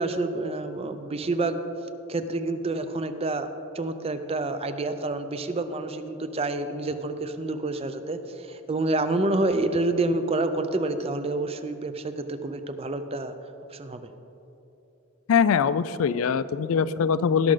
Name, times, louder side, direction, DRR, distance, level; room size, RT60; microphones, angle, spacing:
voice 1, 0.0-1.6 2.1-3.5 3.7-13.3 13.7-14.1, right 2 dB, 30° right, 9 dB, 0.5 m, -28 dB
voice 2, 15.3-17.5, left 6 dB, 80° left, 15 dB, 0.4 m, -22 dB
17.5 x 6.3 x 3.8 m, 2.9 s
head